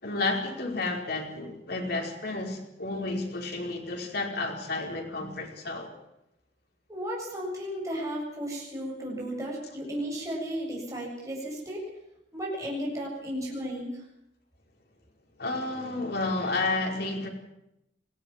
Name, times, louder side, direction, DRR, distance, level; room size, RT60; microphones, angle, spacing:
voice 1, 0.0-5.9 15.4-17.3, left 2 dB, 60° left, 1 dB, 5.1 m, -31 dB
voice 2, 6.9-11.9 12.3-14.0, equal, 20° right, -3 dB, 7.8 m, -34 dB
21.5 x 16.0 x 7.5 m, 0.81 s
head